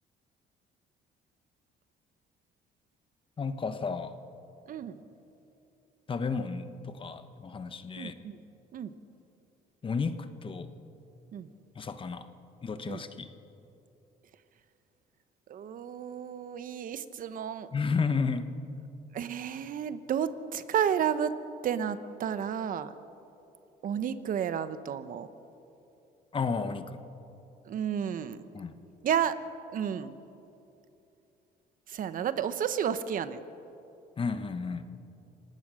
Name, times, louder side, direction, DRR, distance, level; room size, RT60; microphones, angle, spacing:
voice 1, 3.4-4.2 6.1-8.1 9.8-10.7 11.7-12.3 12.6-13.3 17.7-18.5 26.3-27.0 28.5-28.7 34.2-34.9, left 5 dB, 30° left, 10 dB, 1.2 m, -32 dB
voice 2, 4.7-5.0 8.0-8.4 8.7-8.9 11.3-11.5 12.9-13.0 15.5-17.7 19.1-21.3 21.6-22.9 23.8-25.3 27.6-28.5 29.0-29.4 29.7-30.1 31.9-33.4, right 8 dB, 55° right, 12 dB, 1.0 m, -31 dB
28.0 x 18.0 x 6.4 m, 2.9 s
cardioid pair, 110°, 17 cm